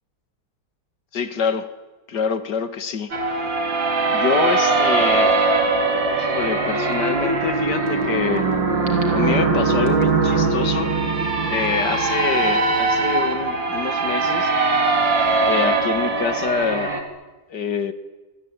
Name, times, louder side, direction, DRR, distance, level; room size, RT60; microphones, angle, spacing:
voice 1, 1.1-1.7 2.1-3.4 4.1-5.3 6.1-8.5 9.1-10.9 11.5-14.5 15.4-17.0 17.5-17.9, left 6 dB, 55° left, 11 dB, 2.2 m, -26 dB
sound 1, 3.1-17.0, right 3 dB, 65° right, 3.9 m, -21 dB
26.5 x 24.5 x 8.9 m, 1.2 s
omnidirectional pair, 2.2 m